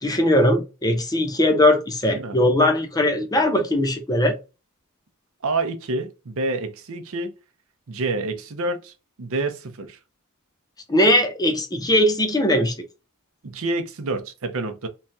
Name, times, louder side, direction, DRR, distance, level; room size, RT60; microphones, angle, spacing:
voice 1, 0.0-4.4 10.9-12.7, left 1 dB, 15° left, 0.7 m, -20 dB
voice 2, 2.2-2.5 5.4-7.3 7.9-10.0 13.4-14.9, right 2 dB, 65° right, 0.7 m, -28 dB
3.1 x 2.3 x 2.6 m
head